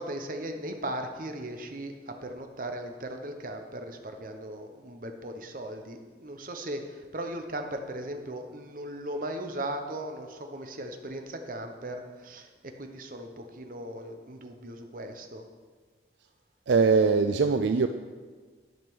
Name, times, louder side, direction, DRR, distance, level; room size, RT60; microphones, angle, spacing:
voice 1, 0.0-15.4, right 1 dB, 45° right, 5 dB, 0.8 m, -38 dB
voice 2, 16.7-17.9, right 4 dB, 75° right, 8 dB, 0.4 m, -22 dB
11.0 x 5.2 x 6.1 m, 1.5 s
head